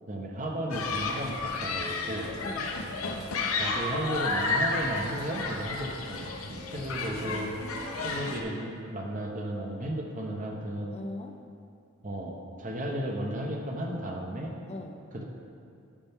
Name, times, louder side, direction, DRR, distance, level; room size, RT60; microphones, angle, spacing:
voice 1, 0.1-2.3 3.5-7.6 8.0-11.0 12.0-14.5 15.1-15.2, right 1 dB, 35° right, 1 dB, 0.9 m, -34 dB
Human group actions, 0.7-8.4, left 3 dB, 90° left, 0.9 m, -32 dB
voice 2, 2.4-2.8 7.2-8.3 10.9-11.4 14.7-15.0, left 2 dB, 30° left, 4 dB, 0.4 m, -42 dB
10.0 x 6.7 x 3.6 m, 2.5 s
head